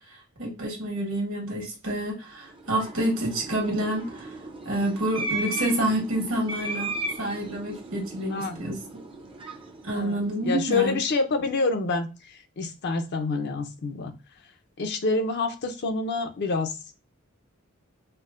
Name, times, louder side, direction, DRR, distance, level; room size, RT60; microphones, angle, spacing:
voice 1, 0.4-4.4 4.6-8.8 9.8-11.0, right 1 dB, 70° right, 0 dB, 1.3 m, -28 dB
sound 1, 2.4-11.0, right 2 dB, 25° right, 0.5 m, -36 dB
voice 2, 8.3-8.7 9.9-14.1 14.8-16.9, left 3 dB, 55° left, 7 dB, 0.5 m, -27 dB
4.4 x 2.1 x 2.4 m, 0.30 s
head